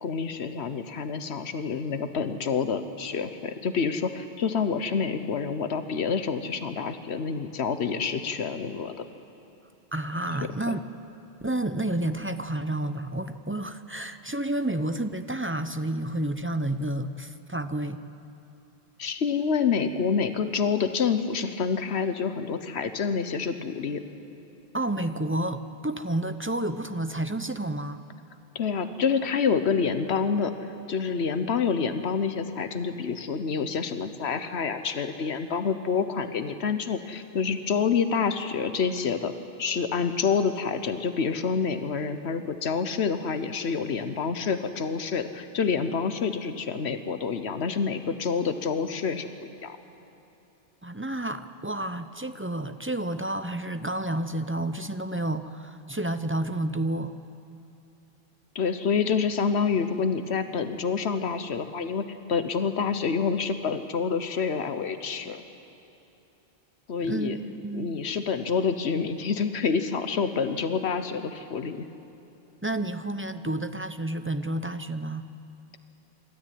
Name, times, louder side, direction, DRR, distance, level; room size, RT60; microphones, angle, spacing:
voice 1, 0.0-9.0 19.0-24.0 28.5-30.5 30.9-39.3 39.6-49.8 58.5-62.0 62.3-65.4 66.9-67.4 67.7-71.8, left 5 dB, 85° left, 9 dB, 1.2 m, -27 dB
voice 2, 9.9-10.8 11.4-18.0 24.7-28.0 50.8-57.2 67.0-68.0 72.6-75.3, right 1 dB, 15° right, 9 dB, 0.5 m, -30 dB
26.0 x 13.0 x 9.3 m, 3.0 s
omnidirectional pair, 1.1 m